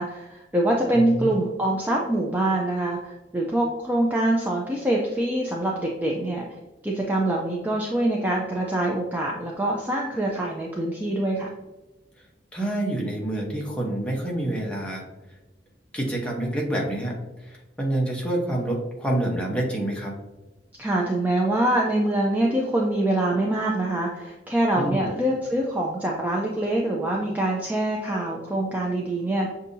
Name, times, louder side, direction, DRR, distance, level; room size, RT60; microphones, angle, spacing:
voice 1, 0.0-6.4 6.8-11.5 20.8-29.5, right 1 dB, 10° right, -2 dB, 0.4 m, -24 dB
voice 2, 0.9-1.3 12.5-15.0 15.9-20.1 24.7-25.1, right 1 dB, 5° left, -2 dB, 0.9 m, -27 dB
6.7 x 2.7 x 2.6 m, 1.0 s
head